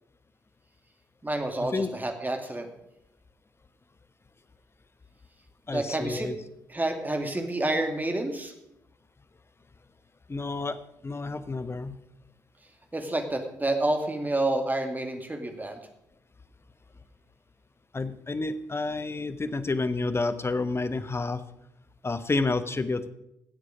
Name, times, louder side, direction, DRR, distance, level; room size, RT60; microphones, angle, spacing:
voice 1, 1.2-2.7 5.7-6.3 6.7-8.5 12.9-15.8, right 2 dB, 20° right, 5 dB, 2.5 m, -29 dB
voice 2, 5.7-6.4 10.3-12.0 17.9-21.4 22.0-23.1, left 3 dB, 25° left, 12 dB, 1.2 m, -30 dB
18.0 x 8.1 x 5.2 m, 0.81 s
hypercardioid pair, 45°, 10 cm